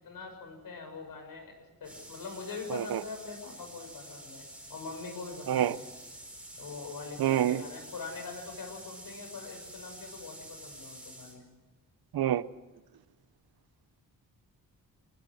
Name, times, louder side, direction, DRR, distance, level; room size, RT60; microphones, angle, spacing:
voice 1, 0.0-1.5 1.8-4.4 4.7-5.8 6.6-11.4, left 4 dB, 70° left, 6.6 m, -43 dB
sound 1, 1.8-11.4, right 1 dB, 5° right, 4.6 m, -48 dB
voice 2, 2.7-3.0 5.5-5.7 7.2-7.6 12.1-12.4, right 11 dB, 90° right, 0.8 m, -27 dB
25.0 x 20.5 x 6.5 m
wide cardioid pair, 160°, 36 cm